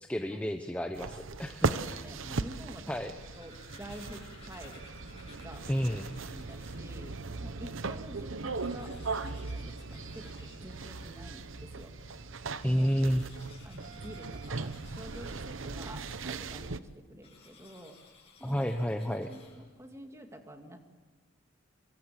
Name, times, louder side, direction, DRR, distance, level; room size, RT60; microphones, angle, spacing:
voice 1, 0.0-2.0 2.9-3.1 5.7-6.1 12.6-13.2 18.4-19.3, equal, 5° left, 5 dB, 1.0 m, -31 dB
sound 1, 0.9-16.8, right 3 dB, 75° right, 0.9 m, -38 dB
voice 2, 1.7-4.9 5.4-8.9 9.2-11.9 12.6-13.0 13.6-18.0 18.4-18.7 19.2-20.8, equal, 15° right, 4 dB, 2.3 m, -49 dB
sound 2, 3.0-7.1 7.6-7.7 7.9-8.0 8.4-11.5 12.4-15.9 17.2-19.9, left 4 dB, 30° left, 7.8 m, -58 dB
sound 3, 4.3-13.4, left 1 dB, 65° left, 3.1 m, -58 dB
24.5 x 23.5 x 7.6 m, 1.2 s
head